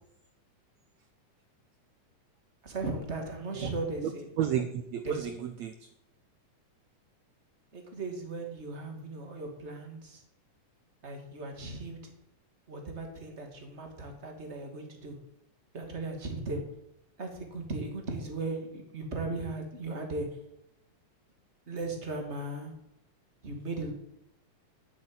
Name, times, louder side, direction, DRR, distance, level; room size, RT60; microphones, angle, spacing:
voice 1, 2.6-4.2 5.0-5.3 7.7-10.2 11.0-12.1 12.7-15.2 15.7-16.6 17.2-20.3 21.7-22.7 23.4-23.9, right 2 dB, 20° right, 3 dB, 2.6 m, -37 dB
voice 2, 4.0-5.9, right 9 dB, 70° right, 9 dB, 1.8 m, -33 dB
13.5 x 7.7 x 9.5 m, 0.83 s
omnidirectional pair, 3.8 m